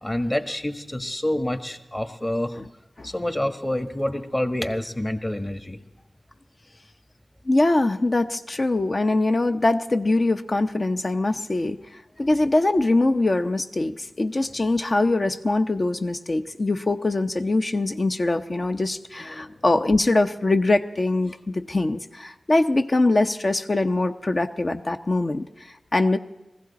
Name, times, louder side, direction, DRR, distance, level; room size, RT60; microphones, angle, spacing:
voice 1, 0.0-2.6 3.0-5.8, left 1 dB, 25° left, 7 dB, 1.5 m, -27 dB
voice 2, 7.5-11.8 12.2-26.2, left 2 dB, 45° left, 7 dB, 0.7 m, -23 dB
20.5 x 15.0 x 4.2 m, 0.97 s
cardioid pair, 45°, 0 cm